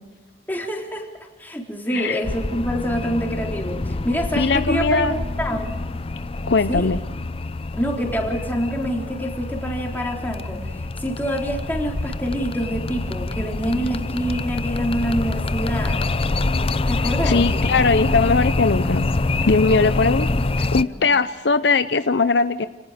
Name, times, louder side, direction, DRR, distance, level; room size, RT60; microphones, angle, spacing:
voice 1, 0.5-1.1 1.4-5.7 6.7-6.9 7.7-10.6 11.0-16.1 16.9-17.5 20.8-21.1, equal, 10° left, -1 dB, 4.0 m, -26 dB
sound 1, 2.2-20.8, left 2 dB, 35° left, 0.6 m, -25 dB
voice 2, 4.4-5.1 6.5-7.0 17.2-19.1 19.5-20.3 20.6-22.7, left 4 dB, 70° left, 11 dB, 0.7 m, -20 dB
29.5 x 18.5 x 5.1 m, 1.3 s
head